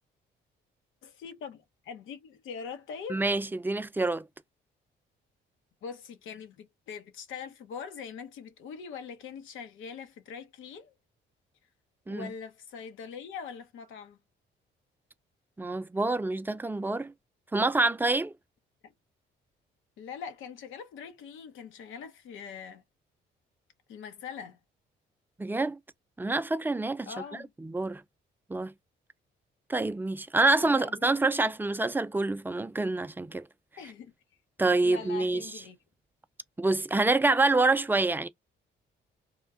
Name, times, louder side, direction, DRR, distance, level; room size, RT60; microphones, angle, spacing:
voice 1, 1.0-3.2 5.8-10.9 12.1-14.2 18.8-18.9 20.0-22.8 23.9-24.6 27.1-27.5 30.6-31.1 33.8-34.1 34.8-35.8, left 6 dB, 85° left, 0.9 m, -42 dB
voice 2, 3.1-4.2 12.1-12.3 15.6-17.1 17.5-18.3 25.4-25.8 26.2-28.0 28.5-28.7 29.7-33.5 34.6-35.4 36.6-38.3, right 2 dB, 10° right, 0.4 m, -27 dB
3.5 x 2.4 x 3.6 m
cardioid pair, 90°, 20 cm